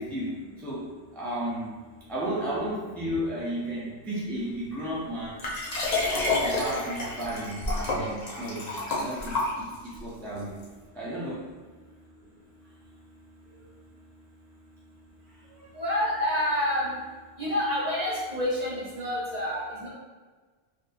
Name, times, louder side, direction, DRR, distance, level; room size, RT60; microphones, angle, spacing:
voice 1, 0.0-1.7 2.1-5.4 6.4-10.6 10.9-11.4 13.5-13.7 15.3-15.8, right 1 dB, ahead, -8 dB, 0.5 m, -34 dB
Liquid, 5.4-10.0 10.6-10.7, left 2 dB, 45° left, 0.7 m, -29 dB
voice 2, 15.7-17.0 17.4-19.9, left 1 dB, 40° right, -7 dB, 0.8 m, -28 dB
4.1 x 2.6 x 2.4 m, 1.4 s
omnidirectional pair, 1.2 m